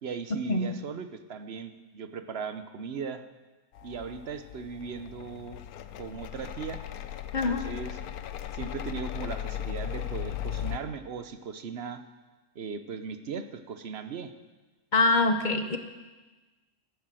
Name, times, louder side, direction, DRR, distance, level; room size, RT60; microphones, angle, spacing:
voice 1, 0.0-3.2 3.8-5.6 6.0-6.8 7.5-8.0 8.5-12.0 12.6-14.3, right 6 dB, 50° right, 10 dB, 0.9 m, -38 dB
sound 1, 3.8-10.8, left 10 dB, 75° left, 1.2 m, -37 dB
voice 2, 7.3-7.7 14.9-15.8, left 3 dB, 40° left, 7 dB, 0.8 m, -24 dB
13.0 x 10.5 x 7.6 m, 1.2 s
omnidirectional pair, 1.6 m